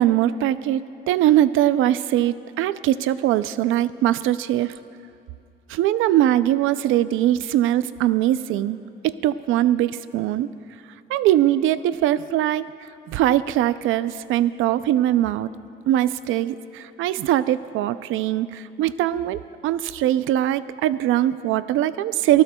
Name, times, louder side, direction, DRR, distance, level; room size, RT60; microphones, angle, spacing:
voice 1, 0.0-4.7 5.7-8.8 9.0-10.5 11.1-12.7 13.1-15.5 15.9-22.4, right 13 dB, 90° right, 15 dB, 0.4 m, -21 dB
28.0 x 19.0 x 2.3 m, 2.5 s
cardioid pair, 90°, 20 cm